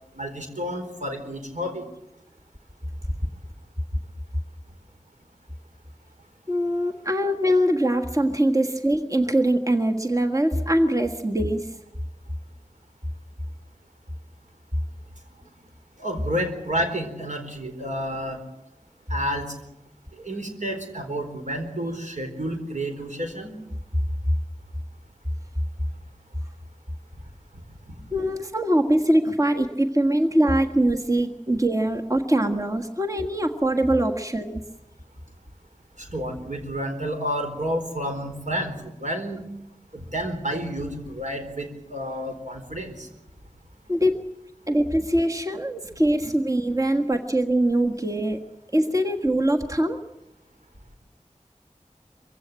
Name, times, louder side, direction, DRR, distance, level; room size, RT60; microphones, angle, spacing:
voice 1, 0.1-1.9 16.0-18.4 19.1-19.5 20.1-23.5 27.5-27.6 36.0-39.5 39.9-43.1, equal, 80° right, 4 dB, 4.2 m, -30 dB
voice 2, 6.5-11.7 28.1-34.6 43.9-44.2 44.7-48.4 48.7-50.0, right 1 dB, 25° right, 4 dB, 1.6 m, -22 dB
24.0 x 16.0 x 9.0 m, 0.93 s
wide cardioid pair, 40°, 13 cm